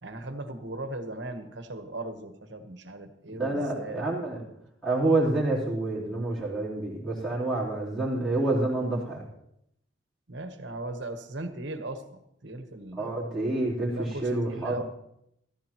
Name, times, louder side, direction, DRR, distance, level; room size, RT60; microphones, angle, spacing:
voice 1, 0.0-4.1 10.3-13.2 13.9-14.8, right 2 dB, 60° right, 7 dB, 1.2 m, -38 dB
voice 2, 3.3-4.4 4.8-9.2 12.9-14.8, right 2 dB, ahead, -8 dB, 3.5 m, -28 dB
15.0 x 14.5 x 3.0 m, 0.77 s
head